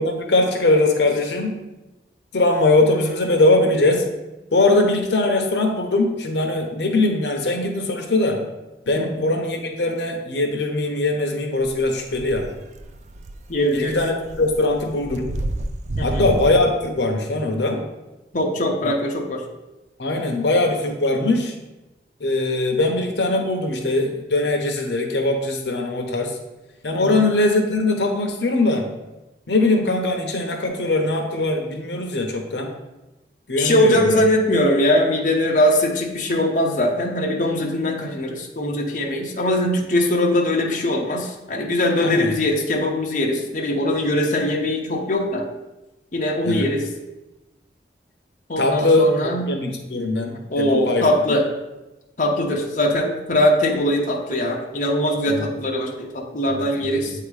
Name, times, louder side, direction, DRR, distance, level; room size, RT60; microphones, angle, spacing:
voice 1, 0.0-1.5 2.3-4.0 4.5-8.4 8.9-12.5 13.7-15.3 16.0-17.8 18.8-18.9 20.0-21.5 22.2-26.3 26.8-28.9 29.5-32.7 33.5-34.2 42.0-42.3 46.5-46.6 48.6-51.1 55.3-55.5 56.5-57.0, left 2 dB, 75° left, 3 dB, 0.8 m, -21 dB
sound 1, 11.6-11.8 12.1-16.6, right 1 dB, 40° right, 0.4 m, -30 dB
voice 2, 13.5-14.0 16.0-16.3 18.3-19.4 26.9-27.3 33.6-45.4 46.1-46.8 48.5-49.5 50.5-51.4 52.2-57.1, left 1 dB, 45° left, -1 dB, 0.8 m, -21 dB
8.0 x 2.9 x 4.8 m, 1.0 s
head